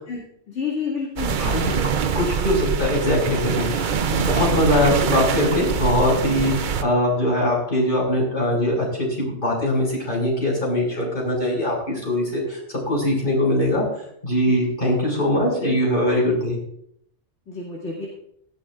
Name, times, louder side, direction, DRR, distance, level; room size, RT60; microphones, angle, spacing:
voice 1, 0.5-1.8 14.5-14.6 15.6-15.7 16.1-16.2 17.5-18.1, left 4 dB, 80° left, -4 dB, 2.8 m, -30 dB
sound 1, 1.2-6.8, right 6 dB, 50° right, 0.7 m, -24 dB
voice 2, 1.4-1.7 2.1-8.9 9.2-12.6 12.9-13.8 14.2-16.6, left 1 dB, 45° left, -3 dB, 6.3 m, -22 dB
17.0 x 15.0 x 2.5 m, 0.71 s
omnidirectional pair, 1.2 m